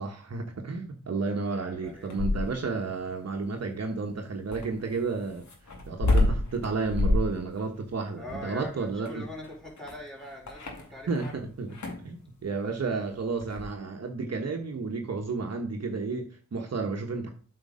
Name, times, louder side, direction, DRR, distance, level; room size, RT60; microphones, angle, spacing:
voice 1, 0.0-5.5 5.9-9.2 11.1-11.8 12.0-17.3, right 4 dB, 55° right, 1.2 m, -32 dB
voice 2, 1.4-2.1 8.1-11.4 11.8-12.0, left 1 dB, ahead, 4.0 m, -43 dB
sound 1, 1.8-2.7 4.5-11.4 11.7-12.1 13.4-13.7, left 2 dB, 60° left, 2.2 m, -29 dB
8.2 x 4.7 x 5.0 m
cardioid pair, 60°, 31 cm